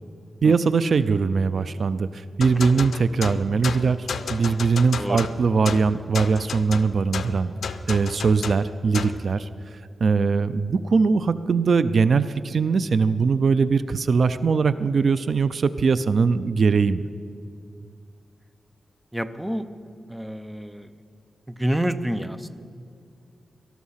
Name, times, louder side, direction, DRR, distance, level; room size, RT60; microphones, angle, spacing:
voice 1, 0.4-7.5 7.9-9.5 10.0-17.1, right 5 dB, 50° right, 13 dB, 0.4 m, -21 dB
sound 1, 2.4-9.2, left 6 dB, 75° left, 0.6 m, -32 dB
voice 2, 19.1-19.7 20.1-20.9 21.5-22.5, equal, 5° right, 10 dB, 0.6 m, -28 dB
19.0 x 12.5 x 5.7 m, 2.4 s
wide cardioid pair, 165°, 0 cm